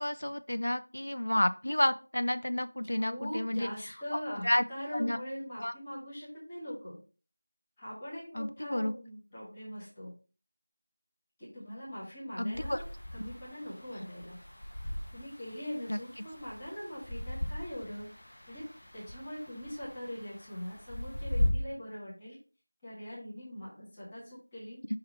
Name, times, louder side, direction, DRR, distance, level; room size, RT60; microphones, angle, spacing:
voice 1, 0.0-3.7 4.4-4.6 4.9-5.2 5.6-5.7 8.3-8.9 12.4-12.8 15.9-16.0, left 1 dB, 55° left, 11 dB, 0.5 m, -30 dB
voice 2, 2.8-7.0 7.8-10.1 11.4-12.8 13.1-14.4 15.1-18.1 18.5-18.6 18.9-22.4 22.8-24.8, equal, 10° left, -10 dB, 1.7 m, -42 dB
sound 1, 12.5-21.5, left 1 dB, 30° left, 1.2 m, -38 dB
5.6 x 4.7 x 4.4 m, 0.35 s
figure-of-eight pair, 175°, 0 cm